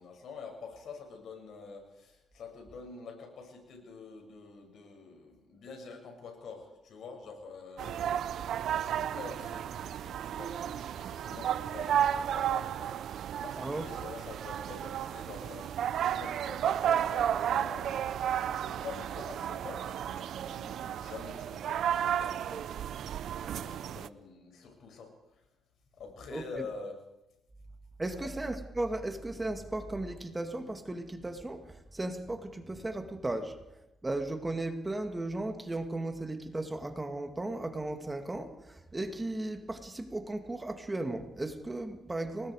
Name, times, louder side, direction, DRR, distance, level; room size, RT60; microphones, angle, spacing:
voice 1, 0.0-12.9 13.4-22.7 23.0-25.4 26.0-27.0 28.2-28.3, left 4 dB, 65° left, 6.9 m, -47 dB
sound 1, 7.8-24.1, right 10 dB, 70° right, 0.7 m, -33 dB
voice 2, 13.6-13.9 26.3-26.4 28.0-33.6 34.0-42.5, right 2 dB, 15° right, 2.2 m, -36 dB
30.0 x 19.5 x 5.0 m
cardioid pair, 90°, 0 cm